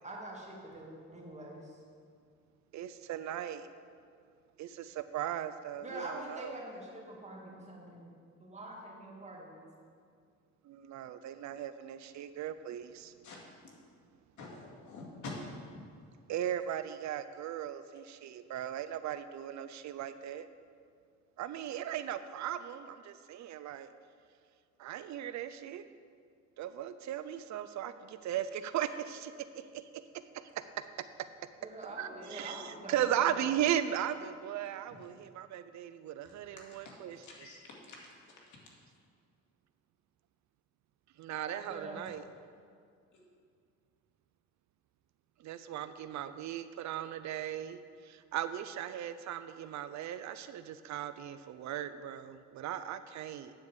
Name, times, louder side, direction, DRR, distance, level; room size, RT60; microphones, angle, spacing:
voice 1, 0.0-1.8 5.8-8.1 8.4-9.6 31.6-33.4 41.7-42.1, right 1 dB, 20° right, -2 dB, 2.2 m, -45 dB
voice 2, 2.7-3.7 4.6-6.5 10.7-13.1 16.3-20.5 21.4-23.9 24.8-25.8 26.6-29.3 29.7-29.8 31.8-37.2 41.2-42.2 45.4-47.8 48.1-53.5, right 10 dB, 70° right, 12 dB, 0.5 m, -37 dB
voice 3, 14.4-15.8 34.9-35.0 36.5-37.6 37.9-38.1 38.5-38.6, left 2 dB, 70° left, -3 dB, 2.2 m, -46 dB
9.6 x 4.8 x 7.3 m, 2.2 s
cardioid pair, 90°, 30 cm